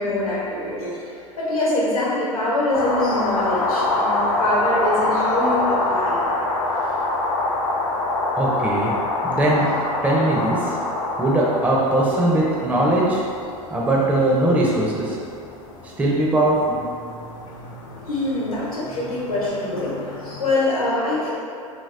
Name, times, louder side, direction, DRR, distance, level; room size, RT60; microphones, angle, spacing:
voice 1, 0.0-6.2 18.1-21.3, left 1 dB, 90° left, -7 dB, 0.9 m, -24 dB
sound 1, 2.7-20.5, left 2 dB, 60° left, 0.5 m, -26 dB
voice 2, 8.4-9.0 9.2-9.7 10.0-10.7 11.2-13.2 13.7-15.2 16.0-16.8, right 1 dB, 10° right, -4 dB, 0.4 m, -20 dB
2.9 x 2.7 x 2.4 m, 2.4 s
figure-of-eight pair, 85°, 18 cm